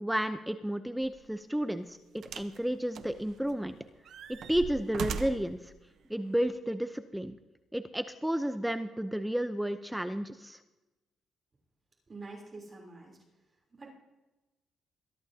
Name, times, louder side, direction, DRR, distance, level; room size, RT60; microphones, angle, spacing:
voice 1, 0.0-3.7 4.3-5.7 6.1-7.4 7.7-10.6, equal, 5° right, 9 dB, 0.7 m, -32 dB
sound 1, 1.0-1.2 2.2-2.6 2.9-3.7 4.1-5.5 6.4-6.5, right 7 dB, 70° right, 0.9 m, -39 dB
voice 2, 12.1-13.2 13.7-13.9, right 3 dB, 30° right, -1 dB, 3.5 m, -46 dB
22.5 x 14.0 x 2.8 m, 1.1 s
cardioid pair, 90°, 0 cm